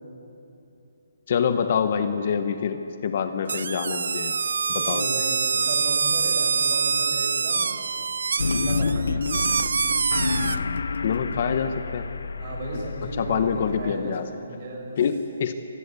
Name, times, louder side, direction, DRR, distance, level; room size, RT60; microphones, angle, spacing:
voice 1, 1.3-4.4 4.7-5.1 11.0-12.0 13.2-14.3 15.0-15.5, left 7 dB, 40° left, 9 dB, 1.1 m, -26 dB
sound 1, 3.5-10.6, right 5 dB, 70° right, 0.4 m, -25 dB
voice 2, 4.7-7.7 8.5-9.0 11.3-11.5 12.4-13.5 13.8-14.1 14.4-15.0, right 2 dB, 30° right, -1 dB, 6.2 m, -34 dB
sound 2, 8.4-13.9, left 4 dB, 85° left, 1.0 m, -29 dB
25.5 x 19.5 x 8.5 m, 2.9 s
hypercardioid pair, 175°, 0 cm